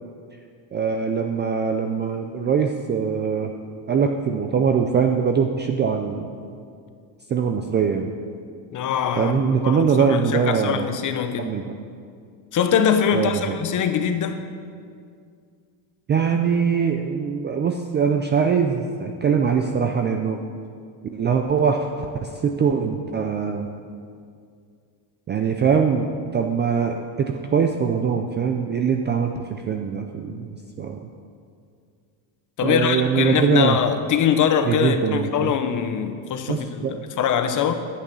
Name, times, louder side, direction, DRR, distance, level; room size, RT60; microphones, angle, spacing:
voice 1, 0.7-3.5 3.9-6.3 7.3-8.1 9.2-10.8 11.4-11.7 13.1-13.5 16.1-20.4 21.1-23.7 25.3-31.0 32.6-33.8 34.6-35.5 36.5-37.0, right 6 dB, 25° right, 0.3 m, -22 dB
voice 2, 8.7-11.5 12.5-14.5 32.6-37.7, left 8 dB, 40° left, 0.8 m, -23 dB
10.0 x 8.6 x 6.1 m
cardioid pair, 135°, 50 cm